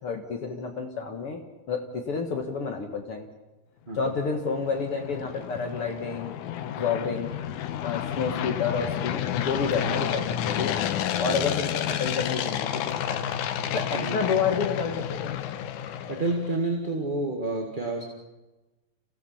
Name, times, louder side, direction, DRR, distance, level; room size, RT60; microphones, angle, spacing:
voice 1, 0.0-3.3 3.9-6.3 6.8-7.3 7.8-10.8 11.2-13.3 13.7-15.4, left 5 dB, 55° left, 3 dB, 2.3 m, -30 dB
sound 1, 4.2-16.5, left 10 dB, 85° left, 2.4 m, -30 dB
voice 2, 16.1-18.0, right 2 dB, 20° right, 0 dB, 1.6 m, -29 dB
29.0 x 17.0 x 5.8 m, 1.1 s
omnidirectional pair, 3.4 m